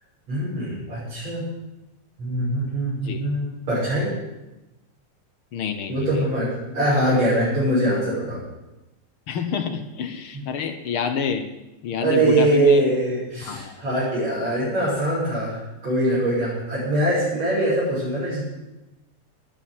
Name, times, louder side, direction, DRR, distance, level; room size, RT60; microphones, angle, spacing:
voice 1, 0.3-1.5 2.2-4.1 5.9-8.4 10.3-10.4 12.0-18.4, right 1 dB, 60° right, -10 dB, 7.8 m, -23 dB
voice 2, 5.5-6.2 9.3-11.5 11.8-12.8 13.4-13.8, left 6 dB, 60° left, 7 dB, 1.6 m, -28 dB
12.5 x 9.8 x 9.3 m, 0.99 s
omnidirectional pair, 3.5 m